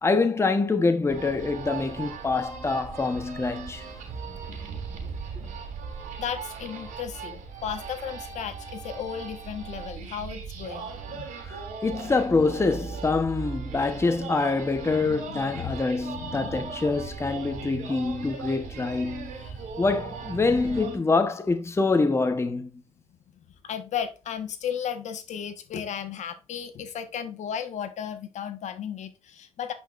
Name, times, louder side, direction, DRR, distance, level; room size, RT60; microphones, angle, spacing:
voice 1, 0.0-3.8 11.3-19.4 19.8-22.8, left 3 dB, 20° left, 1.0 m, -25 dB
sound 1, 1.1-21.0, right 5 dB, 80° right, 3.1 m, -38 dB
voice 2, 6.2-11.3 15.0-15.8 16.2-16.7 19.4-19.7 23.6-29.7, left 8 dB, 65° left, 1.3 m, -35 dB
10.0 x 5.2 x 2.5 m
cardioid pair, 85°, 13 cm